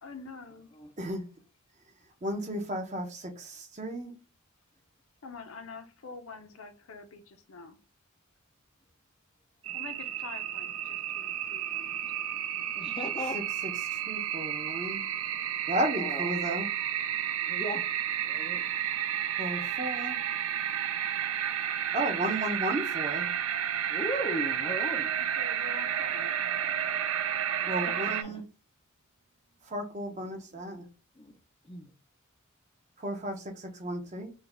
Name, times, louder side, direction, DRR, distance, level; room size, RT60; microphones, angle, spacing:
voice 1, 0.0-0.7 5.2-7.8 9.7-12.1 25.2-26.3, left 4 dB, 65° left, 0.6 m, -46 dB
voice 2, 2.2-4.1 13.3-15.1 15.7-16.7 19.4-20.2 21.9-23.3 27.7-28.4 29.6-30.9 33.0-34.3, right 1 dB, 30° right, 0.8 m, -34 dB
sound 1, 9.6-28.2, right 10 dB, 70° right, 0.4 m, -32 dB
voice 3, 12.8-13.5 15.9-16.3 17.5-17.9 18.2-18.6 23.9-25.1 27.8-27.9 28.2-28.4 31.2-31.3 31.6-31.9, equal, 20° left, 0.4 m, -37 dB
4.0 x 2.3 x 3.5 m
head